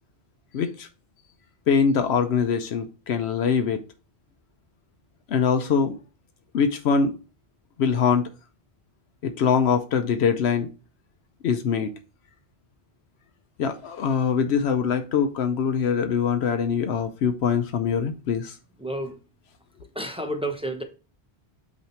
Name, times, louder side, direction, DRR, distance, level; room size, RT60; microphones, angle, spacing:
voice 1, 0.5-0.9 1.7-3.8 5.3-6.0 6.5-7.1 7.8-8.2 9.2-10.7 11.4-11.9 13.6-18.5, left 6 dB, 80° left, 0.9 m, -23 dB
voice 2, 18.8-19.2 19.9-20.8, right 1 dB, 5° right, 0.7 m, -30 dB
8.5 x 3.1 x 4.4 m
omnidirectional pair, 1.1 m